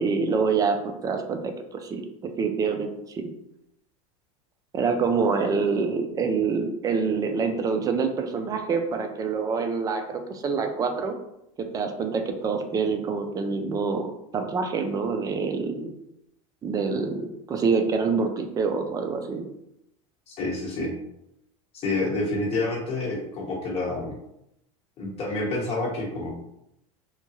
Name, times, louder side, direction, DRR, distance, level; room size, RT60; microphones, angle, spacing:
voice 1, 0.0-2.0 2.4-3.2 4.7-11.2 11.6-15.9 16.6-19.5, right 5 dB, 20° right, 6 dB, 0.4 m, -26 dB
voice 2, 20.3-20.9 21.7-24.2 25.0-26.3, left 2 dB, 35° left, -3 dB, 1.1 m, -28 dB
2.8 x 2.2 x 2.8 m, 0.81 s
supercardioid pair, 125°, 18 cm